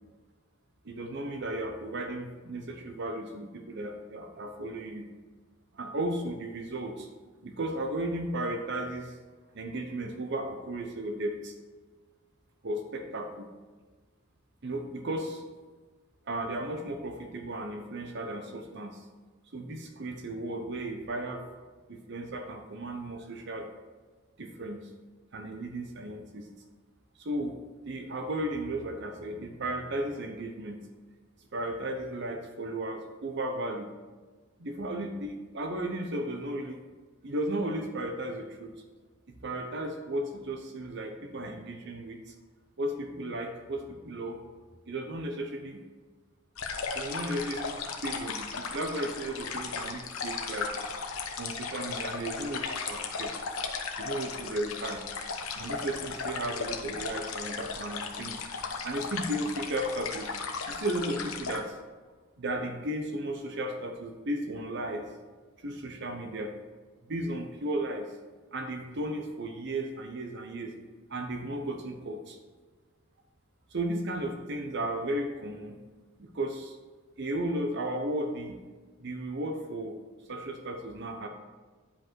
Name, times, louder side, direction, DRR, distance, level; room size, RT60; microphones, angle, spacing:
voice 1, 0.8-5.1 5.7-7.1 7.4-9.2 9.5-11.5 12.6-13.5 14.6-15.4 16.3-19.1 19.5-21.4 21.9-23.7 24.4-24.9 25.3-26.5 27.2-27.6 27.9-30.8 31.5-33.9 34.6-36.8 37.2-38.7 39.4-42.3 42.8-44.4 44.9-45.8 46.9-50.7 51.4-53.3 54.0-55.0 55.5-58.5 58.8-60.3 60.7-61.8 62.4-65.1 65.6-66.5 67.1-68.1 68.5-70.7 71.1-72.4 73.7-75.8 76.2-76.8 77.2-78.6 79.0-80.0 80.3-81.3, right 1 dB, 55° right, 4 dB, 0.8 m, -35 dB
sound 1, 46.6-61.6, left 5 dB, 90° left, 1.0 m, -36 dB
10.0 x 5.3 x 4.6 m, 1.4 s
head